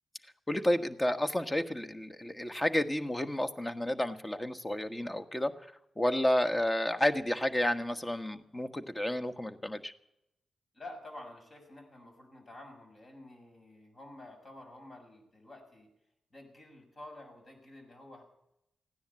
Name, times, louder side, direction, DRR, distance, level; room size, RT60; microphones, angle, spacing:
voice 1, 0.5-5.5 6.0-9.9, left 1 dB, 20° left, 9 dB, 1.4 m, -31 dB
voice 2, 10.7-15.9 16.3-18.2, left 1 dB, 45° left, 3 dB, 6.6 m, -50 dB
16.0 x 10.0 x 8.4 m, 0.83 s
supercardioid pair, 45°, 0 cm